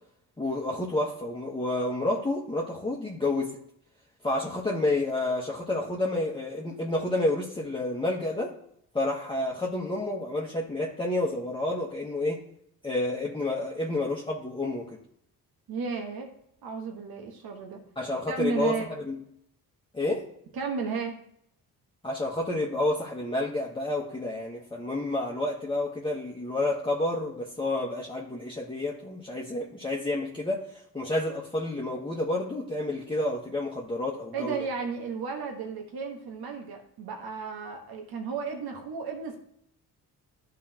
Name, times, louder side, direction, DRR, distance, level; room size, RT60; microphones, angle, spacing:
voice 1, 0.4-3.6 4.2-8.5 8.9-12.4 12.8-14.9 18.0-18.8 19.1-19.2 19.9-20.3 22.0-30.6 30.9-34.6, left 2 dB, 15° left, -3 dB, 1.2 m, -29 dB
voice 2, 15.7-16.3 16.6-17.8 18.3-18.9 20.5-21.2 34.3-39.4, right 5 dB, 65° right, 2 dB, 1.3 m, -33 dB
11.0 x 3.9 x 2.9 m, 0.71 s
supercardioid pair, 65°, 39 cm